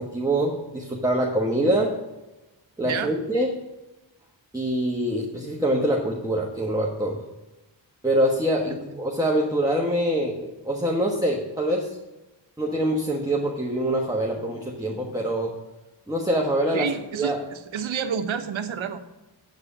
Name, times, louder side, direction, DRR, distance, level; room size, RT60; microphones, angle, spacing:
voice 1, 0.0-1.9 2.8-3.5 4.5-7.2 8.0-11.9 12.6-15.5 16.1-16.9 17.1-17.4, right 1 dB, 10° right, -2 dB, 1.2 m, -24 dB
voice 2, 2.8-3.1 16.7-19.0, right 7 dB, 90° right, 9 dB, 0.9 m, -29 dB
8.3 x 5.0 x 7.3 m, 1.1 s
cardioid pair, 70°, 46 cm